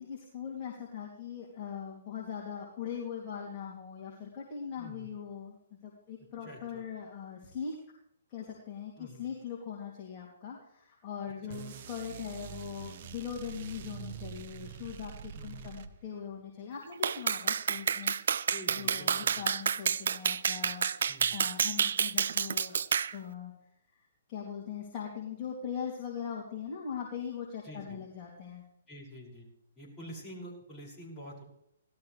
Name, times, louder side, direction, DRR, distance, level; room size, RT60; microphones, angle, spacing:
voice 1, 0.0-5.6 5.8-7.7 8.3-22.8 23.1-23.5 23.9-28.6, left 7 dB, 30° left, -4 dB, 2.8 m, -41 dB
voice 2, 4.8-5.1 6.4-6.8 9.0-9.3 11.5-11.6 15.3-15.7 18.5-19.5 21.1-21.4 27.6-28.0 28.9-29.5 29.8-31.4, equal, 15° left, -5 dB, 6.1 m, -47 dB
sound 1, 11.5-16.3, right 8 dB, 50° right, 0.9 m, -45 dB
Clapping, 17.0-23.1, right 7 dB, 70° right, 0.4 m, -29 dB
18.0 x 13.0 x 3.3 m, 0.76 s
hypercardioid pair, 135°, 0 cm